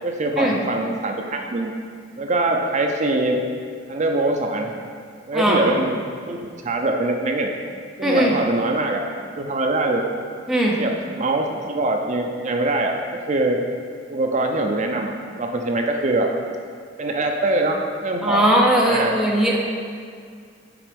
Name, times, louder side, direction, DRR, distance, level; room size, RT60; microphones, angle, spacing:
voice 1, 0.0-1.7 2.2-3.4 3.9-4.8 5.3-5.9 6.3-6.4 6.6-7.5 8.0-9.0 9.4-10.0 10.8-13.6 14.1-16.3 17.0-18.4 18.8-19.2, right 2 dB, 40° right, 2 dB, 0.5 m, -23 dB
voice 2, 8.0-8.3 10.5-10.7 18.2-19.6, right 1 dB, ahead, -4 dB, 0.9 m, -19 dB
5.9 x 4.4 x 5.2 m, 2.2 s
head